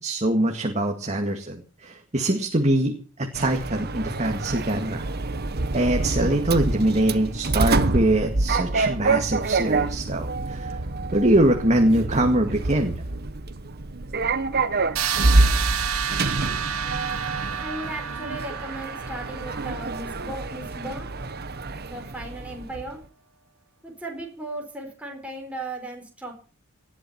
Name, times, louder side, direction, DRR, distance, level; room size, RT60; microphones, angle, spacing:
voice 1, 0.0-5.1 5.7-10.8 11.1-13.0, right 1 dB, 30° right, 3 dB, 2.1 m, -23 dB
Sliding door, 3.4-23.0, right 2 dB, 50° right, 1.2 m, -27 dB
sound 1, 15.0-20.8, right 8 dB, 80° right, 1.8 m, -30 dB
voice 2, 17.6-21.1 21.9-23.0 23.8-26.3, right 1 dB, 5° right, 0 dB, 4.8 m, -36 dB
19.0 x 11.5 x 6.0 m, 0.38 s
head